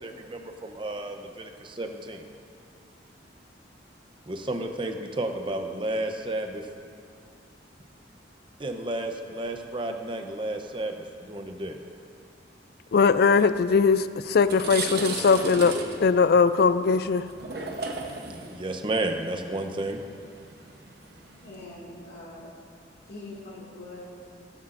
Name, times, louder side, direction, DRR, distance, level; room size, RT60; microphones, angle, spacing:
voice 1, 0.0-2.3 4.3-6.7 8.6-11.8 18.4-20.0, right 1 dB, 25° right, 5 dB, 0.7 m, -32 dB
voice 2, 12.9-17.2, left 5 dB, 55° left, 13 dB, 0.4 m, -20 dB
sound 1, 14.3-21.6, right 3 dB, 55° right, 1.0 m, -36 dB
voice 3, 21.4-22.5 23.0-24.6, left 1 dB, 75° left, -8 dB, 2.2 m, -43 dB
16.5 x 11.0 x 2.6 m, 2.3 s
head